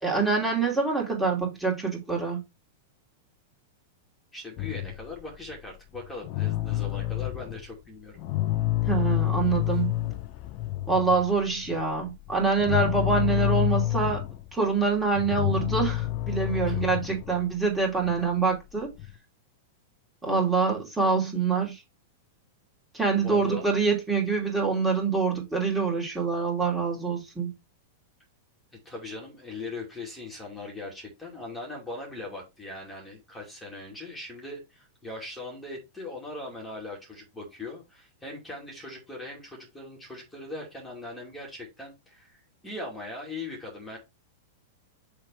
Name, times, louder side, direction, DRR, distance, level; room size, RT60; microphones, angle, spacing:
voice 1, 0.0-2.4 8.9-9.9 10.9-14.2 14.5-18.9 20.2-21.8 22.9-27.5, right 4 dB, 10° right, 2.8 m, -25 dB
voice 2, 4.3-8.2 16.6-16.8 23.1-23.7 28.8-42.4 42.6-44.0, left 2 dB, 10° left, 2.5 m, -40 dB
sound 1, 4.6-7.7 8.2-19.1, left 15 dB, 45° left, 1.0 m, -29 dB
6.7 x 3.4 x 4.6 m
figure-of-eight pair, 100°, 0 cm